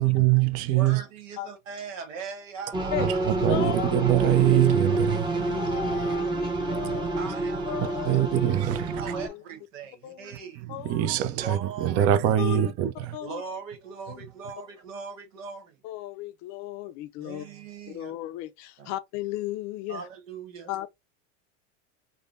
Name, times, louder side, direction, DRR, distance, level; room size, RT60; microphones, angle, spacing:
voice 1, 0.0-1.0 3.0-6.1 6.7-7.0 8.0-9.1 10.7-13.2, right 12 dB, 40° right, 0.5 m, -24 dB
voice 2, 0.7-3.1 3.3-3.6 7.2-8.3 8.9-10.7 11.3-12.1 13.2-15.8 17.2-18.1 18.8-18.9 19.9-20.7, right 5 dB, 90° right, 1.1 m, -40 dB
creepy sonar synths, 2.7-9.3, right 2 dB, 10° right, 0.7 m, -28 dB
voice 3, 3.4-3.9 5.5-7.4 7.7-8.5 9.3-9.4 10.0-10.3 10.7-11.1 12.4-12.7 13.1-13.4 14.1-14.2 15.8-17.5 17.9-20.0 20.7-20.9, left 14 dB, 50° left, 0.4 m, -35 dB
3.5 x 2.1 x 2.4 m
supercardioid pair, 105°, 38 cm